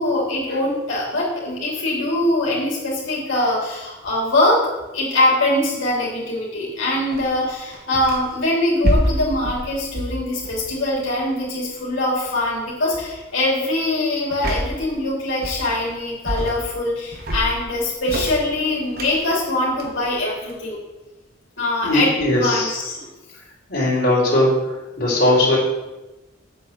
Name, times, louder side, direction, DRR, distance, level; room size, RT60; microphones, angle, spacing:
voice 1, 0.0-20.8 21.6-23.1, left 1 dB, 80° left, -5 dB, 3.3 m, -22 dB
sound 1, 7.1-8.4 8.8-11.2 12.3-12.5 12.9-13.2 14.3-14.9 15.4-16.0 16.2-16.8 17.1-20.7, equal, 50° right, 1.4 m, -27 dB
voice 2, 21.8-22.7 23.7-24.5 25.0-25.6, left 1 dB, 50° left, -5 dB, 3.8 m, -18 dB
8.3 x 6.3 x 7.6 m, 1.0 s
head